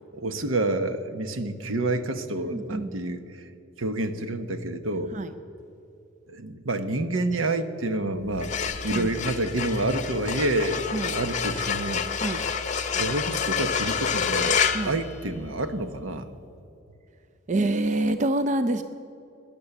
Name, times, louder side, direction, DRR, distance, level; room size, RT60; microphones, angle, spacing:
voice 1, 0.1-3.2 3.8-5.1 6.3-8.5 8.8-12.0 12.9-16.3, right 2 dB, 80° right, 9 dB, 1.1 m, -28 dB
voice 2, 2.4-2.9 5.1-5.3 8.9-9.1 10.9-11.2 12.2-12.4 14.7-14.9 17.5-18.8, right 2 dB, 35° right, 10 dB, 0.5 m, -26 dB
sound 1, 8.3-15.7, left 6 dB, 35° left, 0.7 m, -28 dB
18.5 x 10.5 x 7.1 m, 2.8 s
head